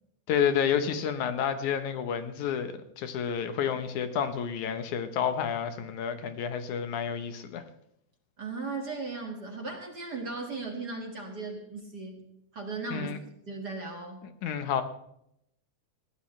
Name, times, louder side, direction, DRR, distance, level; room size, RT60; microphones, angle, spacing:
voice 1, 0.3-7.6 12.9-13.2 14.4-14.8, left 8 dB, 70° left, 9 dB, 2.3 m, -30 dB
voice 2, 8.4-12.2 12.5-13.1 13.5-14.3, right 3 dB, 35° right, 1 dB, 2.0 m, -37 dB
20.0 x 16.0 x 3.2 m, 0.77 s
omnidirectional pair, 3.7 m